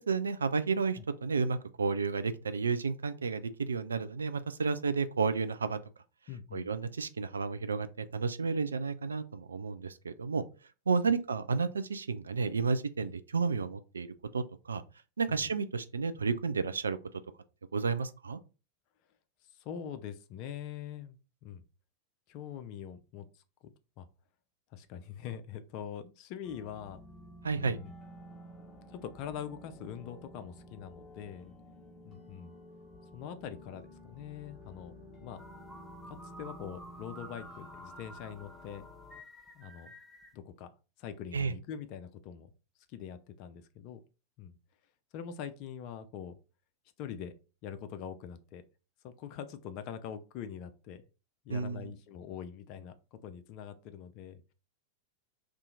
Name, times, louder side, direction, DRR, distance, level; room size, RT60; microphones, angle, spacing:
voice 1, 0.1-5.8 6.5-10.4 10.9-14.1 14.3-14.8 15.2-17.0 17.7-18.4 27.4-27.8 41.3-41.5 51.5-51.9, right 5 dB, 70° right, 0.3 m, -31 dB
voice 2, 6.3-6.7 13.0-13.1 15.3-15.4 19.5-21.6 22.3-23.3 23.6-24.1 24.7-27.0 27.5-27.9 28.9-31.5 32.0-32.5 33.1-34.9 35.2-35.5 36.0-38.9 39.5-39.9 40.3-40.7 41.0-42.5 42.9-44.0 44.4-44.6 45.1-46.4 47.0-47.3 47.6-48.6 49.0-51.0 51.4-54.4, left 8 dB, 40° left, 0.4 m, -43 dB
sound 1, 26.4-39.2, left 1 dB, 15° left, 1.0 m, -52 dB
sound 2, 35.4-40.4, right 1 dB, 5° right, 0.6 m, -51 dB
2.7 x 2.4 x 3.7 m
figure-of-eight pair, 90°, 0 cm